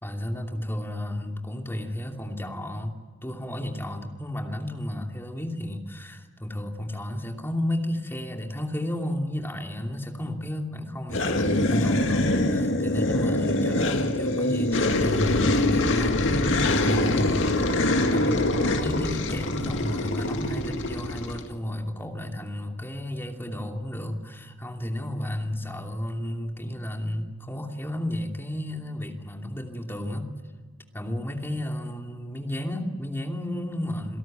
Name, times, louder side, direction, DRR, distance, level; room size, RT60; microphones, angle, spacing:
voice 1, 0.0-17.4 18.1-30.3 30.9-34.2, left 1 dB, 10° left, 2 dB, 2.8 m, -32 dB
sound 1, 11.1-21.4, left 1 dB, 85° left, 2.0 m, -24 dB
28.0 x 18.0 x 9.0 m, 1.5 s
head